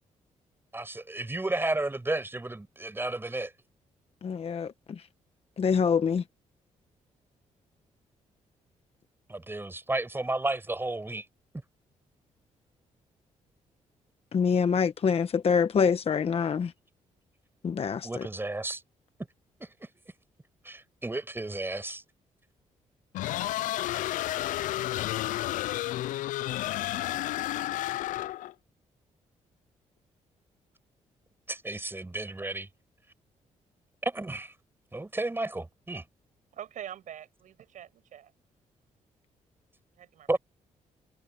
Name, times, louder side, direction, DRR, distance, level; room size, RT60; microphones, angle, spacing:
voice 1, 0.7-3.5 9.3-11.2 18.0-18.8 19.6-19.9 20.6-22.0 31.5-32.7 34.0-34.5 34.9-36.0 40.3-40.4, right 2 dB, 15° right, 6.0 m, -32 dB
voice 2, 4.2-5.1 5.6-6.2 14.3-16.7 17.6-18.3, left 6 dB, 50° left, 1.2 m, -26 dB
sound 1, 23.1-28.5, left 15 dB, 80° left, 0.4 m, -31 dB
voice 3, 36.5-38.3 40.0-40.3, right 10 dB, 75° right, 7.0 m, -44 dB
cardioid pair, 75°, 13 cm